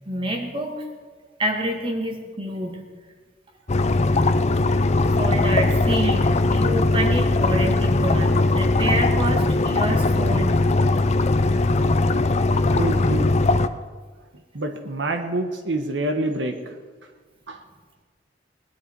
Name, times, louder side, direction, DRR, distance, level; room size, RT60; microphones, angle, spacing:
voice 1, 0.1-0.7 1.4-2.8 5.2-10.6 11.6-11.8, right 1 dB, 30° right, 2 dB, 2.0 m, -27 dB
sound 1, 3.7-13.7, left 2 dB, 40° left, 0.6 m, -20 dB
voice 2, 12.7-13.3 14.5-16.7 17.5-17.6, right 2 dB, 85° right, 5 dB, 1.1 m, -27 dB
19.5 x 11.0 x 4.6 m, 1.5 s
head